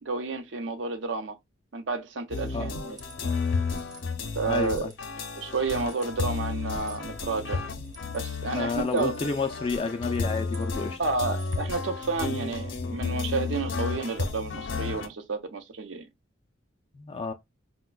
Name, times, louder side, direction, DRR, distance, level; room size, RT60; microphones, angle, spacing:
voice 1, 0.0-1.4 1.7-3.0 4.3-4.9 5.4-7.6 8.1-9.1 11.0-16.1, right 4 dB, 70° right, 0.6 m, -31 dB
sound 1, 2.3-15.1, left 4 dB, 75° left, 0.6 m, -32 dB
sound 2, 2.9-3.2 3.7-4.1 4.6-5.1 5.8-6.1 6.8-7.1 7.8-8.2 8.8-9.3 10.0-10.7 11.3-11.7, right 5 dB, 20° right, 0.6 m, -51 dB
voice 2, 4.4-4.9 8.5-11.0 16.9-17.3, left 4 dB, 30° left, 0.3 m, -30 dB
sound 3, 9.2-10.6 11.4-11.5, right 2 dB, 50° right, 1.0 m, -53 dB
4.9 x 2.1 x 2.2 m
head